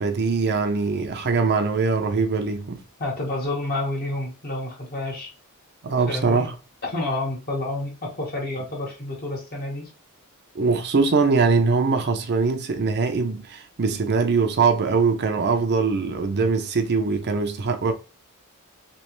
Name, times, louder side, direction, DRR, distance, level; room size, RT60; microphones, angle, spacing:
voice 1, 0.0-2.8 5.8-6.5 10.5-17.9, right 4 dB, 50° right, 0.5 m, -22 dB
voice 2, 3.0-5.3 6.1-6.5 6.8-9.9, left 2 dB, 45° left, 1.3 m, -29 dB
3.2 x 3.0 x 3.0 m
head